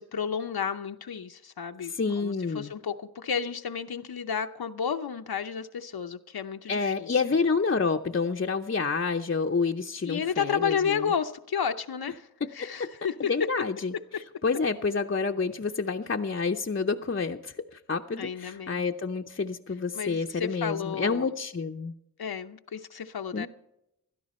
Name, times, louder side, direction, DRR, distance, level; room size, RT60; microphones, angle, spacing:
voice 1, 0.0-7.1 10.0-13.3 18.2-18.8 19.9-21.3 22.2-23.5, left 7 dB, 85° left, 0.7 m, -32 dB
voice 2, 1.8-2.7 6.7-11.1 12.6-12.9 13.3-13.9 14.4-21.9 23.3-23.5, left 4 dB, 35° left, 0.6 m, -28 dB
16.0 x 12.5 x 4.2 m
wide cardioid pair, 50°, 36 cm